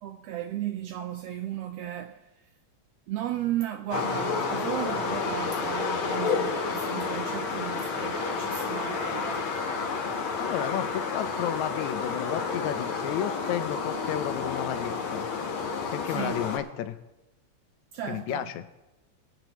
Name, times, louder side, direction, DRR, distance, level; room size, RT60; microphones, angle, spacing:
voice 1, 0.0-2.3 3.1-9.6 16.1-16.4 17.9-18.5, right 11 dB, 80° right, 1.5 m, -35 dB
sound 1, 3.9-16.6, left 5 dB, 55° left, 1.8 m, -30 dB
voice 2, 10.4-15.3 15.9-17.0 18.1-18.6, left 11 dB, 80° left, 2.0 m, -32 dB
21.0 x 8.9 x 3.1 m
omnidirectional pair, 3.4 m